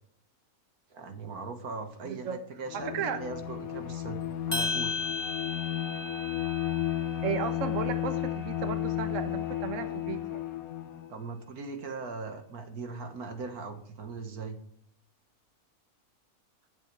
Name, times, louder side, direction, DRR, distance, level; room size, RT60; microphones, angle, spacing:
voice 1, 0.9-5.0 11.1-14.6, right 4 dB, 80° right, 6 dB, 2.0 m, -39 dB
voice 2, 2.0-2.4 2.9-3.2 7.2-10.4, right 7 dB, 60° right, 9 dB, 1.4 m, -34 dB
Bowed string instrument, 2.6-11.1, left 12 dB, 70° left, 1.3 m, -33 dB
sound 1, 4.5-8.9, left 3 dB, 15° left, 2.9 m, -36 dB
19.5 x 7.4 x 3.3 m, 0.66 s
omnidirectional pair, 1.6 m